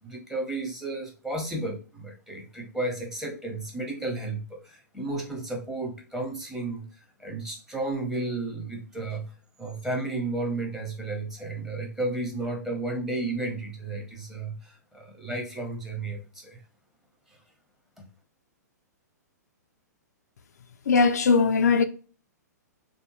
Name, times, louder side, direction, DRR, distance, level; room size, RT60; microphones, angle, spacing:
voice 1, 0.0-6.9 7.2-16.6 17.3-17.4 18.0-18.1, right 2 dB, 5° right, 0.8 m, -33 dB
voice 2, 20.9-21.9, left 5 dB, 65° left, 0.3 m, -20 dB
3.4 x 2.2 x 3.0 m
figure-of-eight pair, 115°, 10 cm